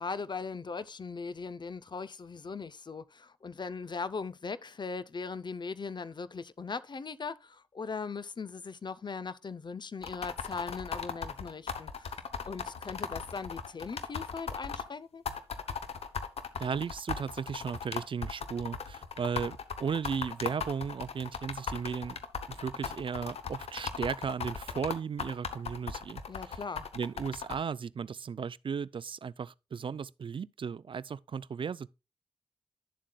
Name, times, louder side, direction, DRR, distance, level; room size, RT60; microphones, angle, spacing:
voice 1, 0.0-15.2 26.3-26.9, left 4 dB, 50° left, 0.6 m, -39 dB
sound 1, 10.0-14.8 15.3-27.6, left 6 dB, 90° left, 0.9 m, -37 dB
voice 2, 16.6-22.2 22.5-26.6 26.9-31.9, right 6 dB, 55° right, 0.4 m, -35 dB
10.5 x 7.4 x 2.2 m
cardioid pair, 55°, 10 cm